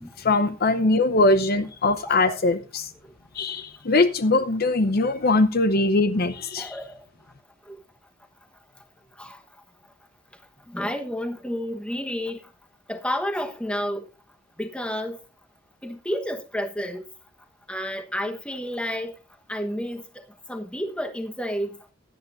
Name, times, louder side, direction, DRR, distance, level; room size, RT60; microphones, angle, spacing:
voice 1, 0.2-2.9 3.3-6.8, left 2 dB, 50° left, 0.8 m, -21 dB
voice 2, 2.0-2.4 6.6-7.0 7.7-7.8 9.2-9.4 10.7-12.4 12.9-14.0 14.6-15.2 15.8-17.0 17.7-19.2 19.5-20.0 20.5-21.8, equal, 5° left, 1.2 m, -30 dB
16.5 x 10.5 x 2.6 m
head